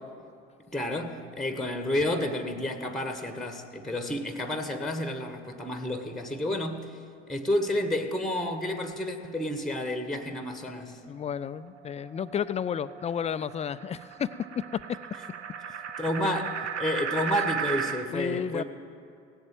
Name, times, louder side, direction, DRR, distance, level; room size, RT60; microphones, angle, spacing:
voice 1, 0.7-6.9 7.3-11.0 16.0-18.6, left 1 dB, ahead, 7 dB, 1.2 m, -30 dB
voice 2, 11.1-14.3 14.7-14.8 18.1-18.6, left 8 dB, 20° left, 15 dB, 0.4 m, -32 dB
sound 1, 11.3-18.1, right 7 dB, 85° right, 0.7 m, -36 dB
17.0 x 8.0 x 7.5 m, 2.5 s
figure-of-eight pair, 60°, 34 cm